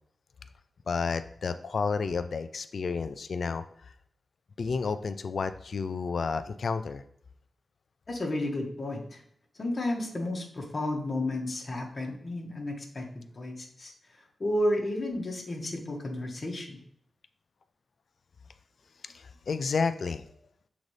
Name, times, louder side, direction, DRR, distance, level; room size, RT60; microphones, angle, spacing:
voice 1, 0.9-3.6 4.6-7.0 19.0-20.2, left 4 dB, 65° left, 11 dB, 0.3 m, -31 dB
voice 2, 8.1-9.2 9.6-13.0 13.3-13.9 14.4-16.8, left 1 dB, 45° left, 0 dB, 1.5 m, -32 dB
7.2 x 4.0 x 3.3 m, 0.66 s
wide cardioid pair, 80°, 0 cm